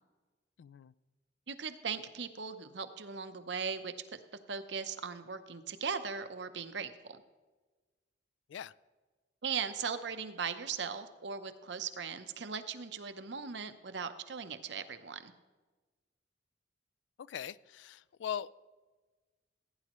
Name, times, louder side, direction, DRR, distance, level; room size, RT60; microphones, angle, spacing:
voice 1, 0.6-0.9 8.5-8.7 17.2-18.5, left 9 dB, 75° left, 0.3 m, -41 dB
voice 2, 1.5-3.9 4.5-7.2 9.4-15.3, right 6 dB, 70° right, 0.8 m, -38 dB
16.0 x 9.7 x 3.0 m
head